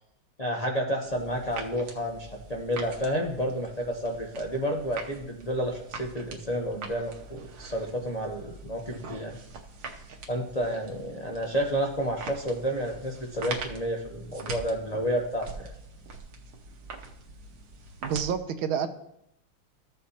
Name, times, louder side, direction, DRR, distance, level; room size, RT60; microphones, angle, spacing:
voice 1, 0.4-9.4 10.3-15.7, equal, 90° left, -1 dB, 0.3 m, -30 dB
sound 1, 1.0-18.3, right 3 dB, 60° right, 1.3 m, -43 dB
voice 2, 18.0-18.9, right 7 dB, 80° right, 10 dB, 1.5 m, -28 dB
14.0 x 7.4 x 2.9 m, 0.79 s
omnidirectional pair, 2.3 m